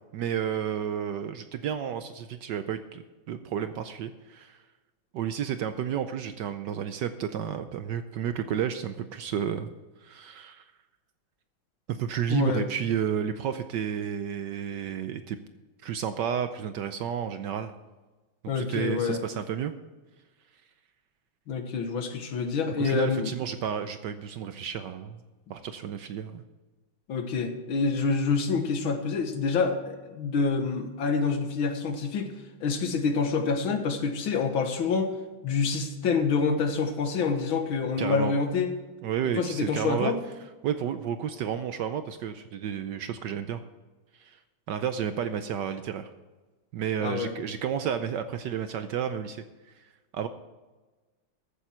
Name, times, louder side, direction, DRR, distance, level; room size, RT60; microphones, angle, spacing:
voice 1, 0.1-4.6 5.1-9.7 10.0-10.6 11.9-15.4 15.8-17.7 18.5-19.7 22.8-25.2 25.5-26.4 38.0-38.3 39.0-40.1 40.6-43.6 44.2-44.4 44.7-46.1 46.7-49.4 49.8-49.9 50.1-50.3, right 8 dB, 70° right, 10 dB, 1.1 m, -31 dB
voice 2, 12.3-12.7 18.5-19.2 21.5-23.3 27.1-32.3 32.6-35.1 35.4-38.7 39.4-40.2 47.0-47.3, left 5 dB, 70° left, 6 dB, 2.0 m, -27 dB
14.0 x 9.2 x 4.4 m, 1.2 s
omnidirectional pair, 2.3 m